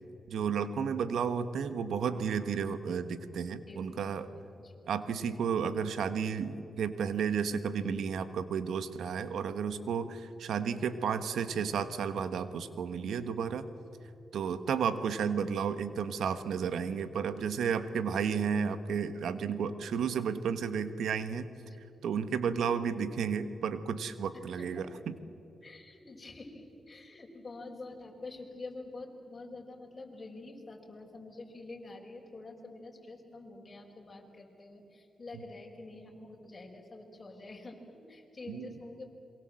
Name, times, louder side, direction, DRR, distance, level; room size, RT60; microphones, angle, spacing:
voice 1, 0.3-4.3 4.9-13.7 14.3-21.5 22.0-25.2 38.5-38.7, right 6 dB, 85° right, 12 dB, 1.3 m, -32 dB
voice 2, 3.7-4.2 4.6-4.7 14.9-15.0 22.4-22.7 24.3-24.8 25.6-39.1, left 2 dB, 35° left, 0 dB, 5.3 m, -47 dB
27.5 x 22.5 x 7.7 m, 3.0 s
cardioid pair, 60°, 0 cm